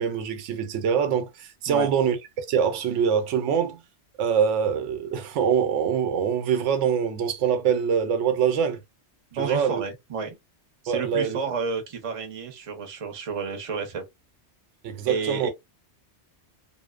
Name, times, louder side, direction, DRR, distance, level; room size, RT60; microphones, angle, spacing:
voice 1, 0.0-3.8 4.2-8.8 9.3-9.8 10.9-11.4 14.8-15.5, right 7 dB, 90° right, 0.9 m, -24 dB
voice 2, 9.3-10.4 10.8-14.0 15.1-15.5, right 5 dB, 35° right, 0.6 m, -31 dB
2.6 x 2.0 x 2.3 m
omnidirectional pair, 1.2 m